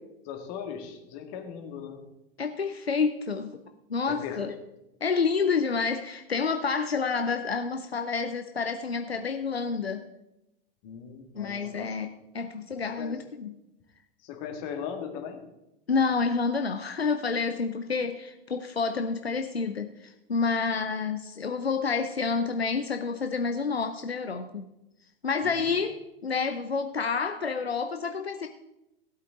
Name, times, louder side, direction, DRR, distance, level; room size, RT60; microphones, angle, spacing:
voice 1, 0.2-2.0 4.2-4.6 10.8-11.9 13.0-13.1 14.2-15.4 25.4-25.8, left 7 dB, 45° left, 4 dB, 2.2 m, -38 dB
voice 2, 2.4-3.6 3.9-4.5 5.0-10.0 11.3-13.6 15.9-24.7 25.2-28.5, left 5 dB, 90° left, 7 dB, 0.7 m, -29 dB
16.5 x 8.3 x 3.8 m, 0.91 s
figure-of-eight pair, 90°, 30 cm